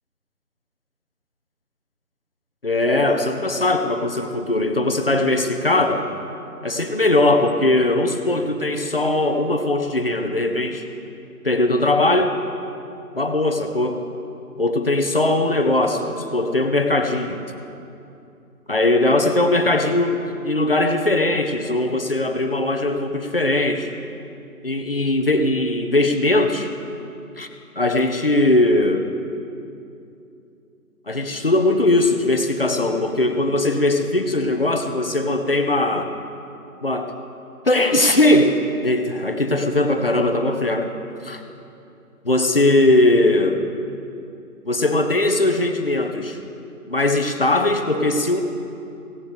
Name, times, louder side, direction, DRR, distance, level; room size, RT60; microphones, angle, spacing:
voice 1, 2.6-6.0 6.6-10.8 11.4-12.3 13.1-14.0 14.6-17.4 18.7-23.9 24.6-26.7 27.4-27.5 27.8-29.1 31.1-36.1 36.8-37.1 37.6-38.6 38.8-40.9 41.2-41.4 42.2-43.6 44.6-46.4 46.9-48.4, left 2 dB, 40° left, 5 dB, 0.9 m, -20 dB
16.5 x 16.5 x 3.3 m, 2.7 s
figure-of-eight pair, 160°, 46 cm